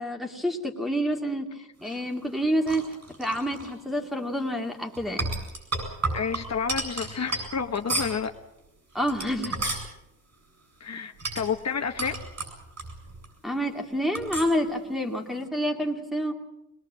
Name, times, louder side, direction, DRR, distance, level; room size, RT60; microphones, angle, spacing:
voice 1, 0.0-1.5 1.8-2.8 3.2-5.3 8.9-9.6 13.4-16.3, equal, ahead, 0 dB, 2.6 m, -28 dB
sound 1, 1.8-3.7 4.9-8.3 8.9-9.9 11.2-13.3 13.5-13.6 14.2-14.6, right 2 dB, 55° right, 7.9 m, -33 dB
voice 2, 6.1-8.3 10.8-12.2, left 6 dB, 55° left, 5 dB, 1.3 m, -30 dB
23.0 x 21.0 x 7.6 m, 0.89 s
wide cardioid pair, 160°, 31 cm